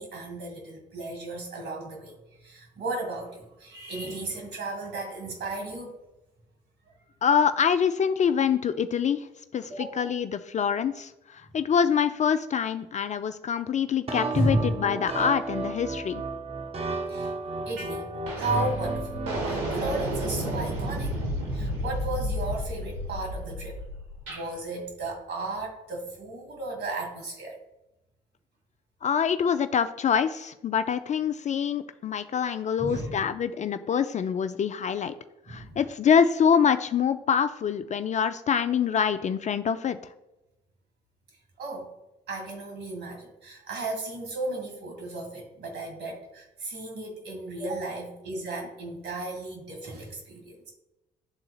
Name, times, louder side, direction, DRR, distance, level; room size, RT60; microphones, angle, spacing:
voice 1, 0.0-6.0 9.7-10.1 14.3-14.7 17.1-17.3 17.6-18.1 18.3-19.2 19.5-21.1 21.5-23.8 24.3-27.6 32.8-33.2 35.5-35.8 41.6-41.9 42.3-50.7, right 2 dB, 60° right, 0 dB, 1.9 m, -34 dB
voice 2, 7.2-9.3 9.5-16.2 29.0-35.1 35.5-40.0, left 7 dB, 35° left, 11 dB, 0.4 m, -25 dB
sound 1, 14.1-19.4, right 3 dB, 30° right, 0.9 m, -33 dB
sound 2, 17.8-18.0 18.3-24.5, equal, 75° right, 1.2 m, -32 dB
10.5 x 3.8 x 2.4 m, 0.93 s
hypercardioid pair, 50°, 20 cm